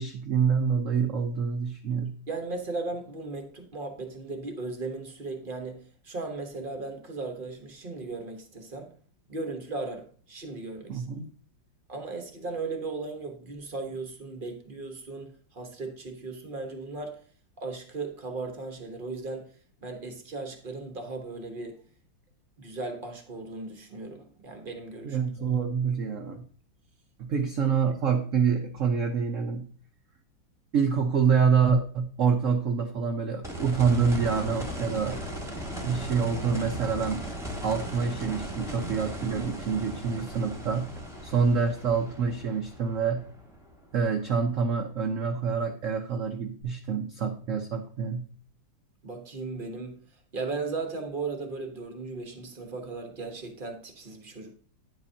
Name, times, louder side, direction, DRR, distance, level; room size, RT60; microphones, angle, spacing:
voice 1, 0.0-2.1 10.9-11.3 25.0-26.4 27.2-29.7 30.7-35.2 35.8-37.2 37.6-40.9 41.2-43.2 43.9-48.2, right 6 dB, 65° right, 0.8 m, -26 dB
voice 2, 2.3-9.0 9.3-11.1 11.9-17.2 17.6-21.8 22.6-25.2 49.0-50.0 50.3-54.5, right 3 dB, 35° right, 0.9 m, -37 dB
sound 1, 33.4-44.3 46.6-46.7, equal, ahead, 1.2 m, -37 dB
9.8 x 7.8 x 2.7 m
omnidirectional pair, 2.2 m